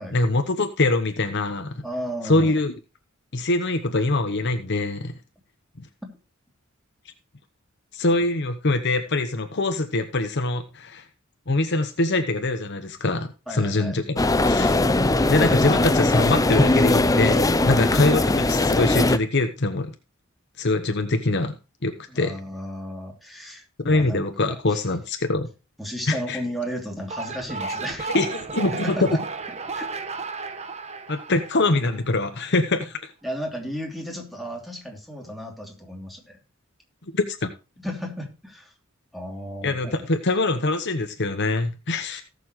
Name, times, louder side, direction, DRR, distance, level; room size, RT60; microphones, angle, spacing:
voice 1, 0.1-1.8 2.2-2.7 3.3-5.1 5.8-5.9 7.9-11.0 11.5-14.8 15.3-19.9 20.6-21.6 21.8-22.3 23.8-25.5 26.1-26.4 27.6-27.8 28.1-29.1 31.1-33.1 37.1-37.5 39.6-42.2, left 2 dB, 60° left, 7 dB, 1.1 m, -23 dB
voice 2, 1.8-2.5 6.0-6.1 13.5-14.0 22.1-24.8 25.8-28.1 28.7-29.2 29.7-29.9 33.2-36.4 37.8-38.7 39.1-40.1 42.1-42.2, equal, ahead, 1 dB, 2.9 m, -34 dB
sound 1, 14.2-19.2, left 2 dB, 15° left, 0.6 m, -20 dB
sound 2, 27.0-32.3, right 4 dB, 35° right, 1.1 m, -33 dB
18.0 x 6.9 x 3.1 m, 0.30 s
head